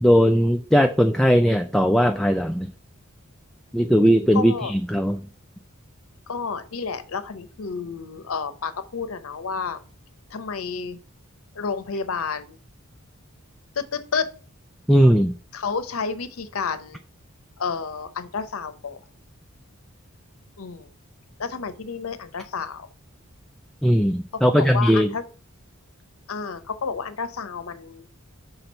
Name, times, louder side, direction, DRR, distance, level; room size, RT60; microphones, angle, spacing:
voice 1, 0.0-2.7 3.7-5.2 14.9-15.3 23.8-25.1, equal, ahead, 5 dB, 0.3 m, -18 dB
voice 2, 4.3-4.7 6.3-9.8 10.3-11.0 11.6-12.6 13.8-14.3 15.5-17.0 17.6-19.0 20.6-20.9 21.4-22.9 24.5-25.2 26.3-28.1, left 5 dB, 70° left, 11 dB, 0.7 m, -30 dB
6.0 x 3.9 x 5.4 m, 0.39 s
head